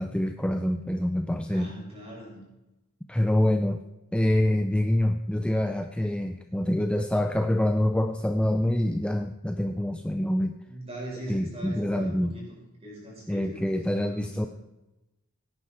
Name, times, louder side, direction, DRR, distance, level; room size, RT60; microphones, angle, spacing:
voice 1, 0.0-1.7 3.1-3.8 4.1-10.5 11.3-12.3 13.3-14.5, left 1 dB, 5° left, 6 dB, 0.4 m, -26 dB
voice 2, 1.5-2.4 10.7-12.5 12.8-14.5, right 1 dB, 30° right, -3 dB, 5.5 m, -40 dB
17.0 x 9.4 x 4.4 m, 0.98 s
head